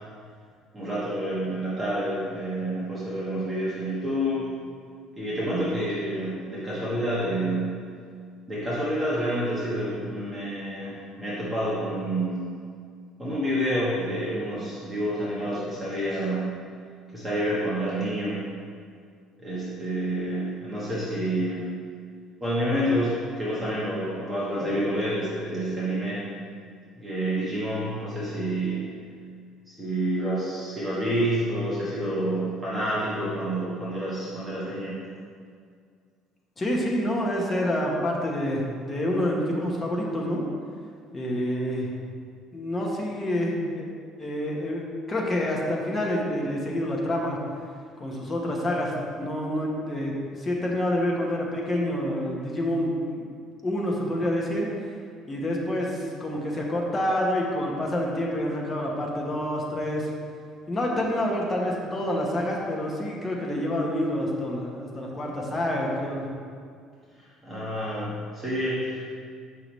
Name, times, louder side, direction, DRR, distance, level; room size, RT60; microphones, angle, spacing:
voice 1, 0.7-4.4 5.1-7.7 8.5-12.4 13.2-16.5 17.1-18.4 19.4-21.7 22.4-26.2 27.0-28.9 29.7-35.0 67.4-69.1, right 1 dB, 10° right, -9 dB, 1.2 m, -28 dB
voice 2, 36.6-40.4 41.1-41.9 42.5-43.9 44.2-47.4 48.0-53.4 53.6-54.7 55.3-60.1 60.7-66.3, left 1 dB, 15° left, -2 dB, 1.0 m, -27 dB
6.7 x 5.6 x 3.1 m, 2.2 s
cardioid pair, 150°, 0 cm